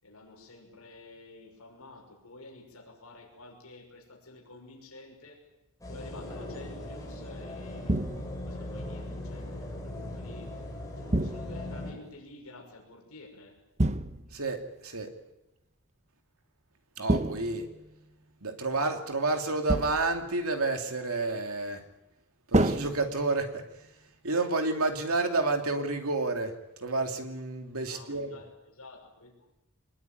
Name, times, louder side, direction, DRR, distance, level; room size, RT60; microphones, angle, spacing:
voice 1, 0.0-5.5 5.9-8.0 8.4-10.6 11.0-13.6 27.9-29.5, left 2 dB, 80° left, 0 dB, 6.3 m, -50 dB
sound 1, 5.8-11.9, left 1 dB, 15° left, 7.5 m, -39 dB
sound 2, 7.9-8.5 11.1-11.8 13.8-14.5 17.1-18.0 19.7-20.3 22.5-23.6, right 1 dB, 30° right, 1.1 m, -29 dB
voice 2, 14.3-15.1 17.0-17.7 18.4-21.8 22.5-23.6 24.2-28.4, right 3 dB, 70° right, 5 dB, 2.9 m, -30 dB
24.5 x 21.0 x 9.3 m, 0.94 s
head